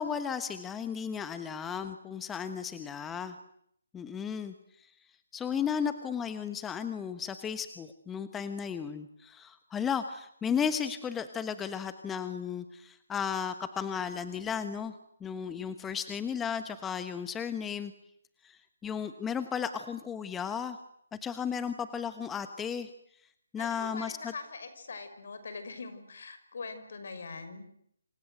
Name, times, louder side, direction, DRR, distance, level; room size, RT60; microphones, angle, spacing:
voice 1, 0.0-3.3 3.9-4.9 5.3-14.9 15.2-17.9 18.4-20.8 21.2-22.9 23.5-24.3, left 7 dB, 10° left, 10 dB, 1.2 m, -34 dB
voice 2, 23.6-27.6, left 4 dB, 65° left, 10 dB, 5.9 m, -42 dB
28.0 x 26.0 x 8.0 m, 0.70 s
figure-of-eight pair, 150°, 0 cm